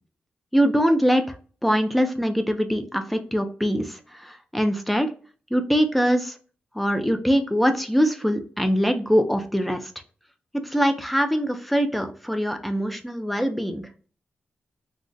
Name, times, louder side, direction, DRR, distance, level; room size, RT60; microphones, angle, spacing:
voice 1, 0.5-1.2 1.6-5.1 5.5-6.3 6.8-9.9 10.6-13.9, equal, ahead, 6 dB, 0.4 m, -23 dB
2.5 x 2.0 x 3.6 m, 0.40 s
wide cardioid pair, 125°, 4 cm